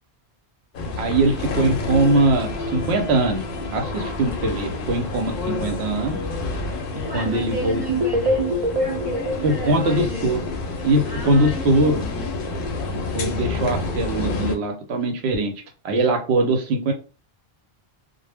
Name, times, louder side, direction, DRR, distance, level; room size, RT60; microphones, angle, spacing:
sound 1, 0.7-14.6, left 3 dB, 60° left, 0.7 m, -29 dB
voice 1, 1.0-3.4 3.7-6.2 7.1-7.8 9.4-10.4 10.8-12.0 12.9-15.5 15.8-16.9, right 2 dB, 75° right, 0.9 m, -21 dB
voice 2, 7.0-10.4 11.0-12.4, equal, 10° right, 0.8 m, -34 dB
sound 2, 7.9-10.8, equal, 55° right, 0.3 m, -25 dB
2.0 x 2.0 x 3.3 m
omnidirectional pair, 1.1 m